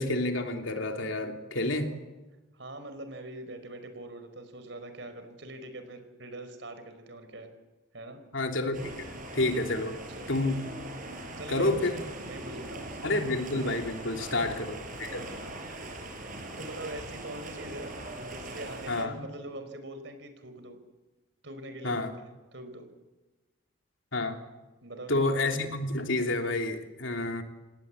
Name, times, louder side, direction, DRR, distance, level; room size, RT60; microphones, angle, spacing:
voice 1, 0.0-1.9 8.3-9.0 9.3-10.0 10.3-10.6 11.5-12.0 13.0-15.3 18.9-19.2 21.8-22.1 24.1-24.4 25.1-27.4, left 2 dB, 75° left, 4 dB, 3.1 m, -29 dB
voice 2, 2.5-7.5 7.9-8.2 10.1-10.3 11.4-13.0 14.2-14.4 15.2-15.6 15.9-16.1 16.6-17.9 18.2-20.8 21.4-22.1 22.5-22.9 24.8-25.3, right 1 dB, 65° right, 9 dB, 4.6 m, -43 dB
sound 1, 8.7-19.0, right 1 dB, 40° right, 5.1 m, -41 dB
28.0 x 18.0 x 8.5 m, 1.1 s
head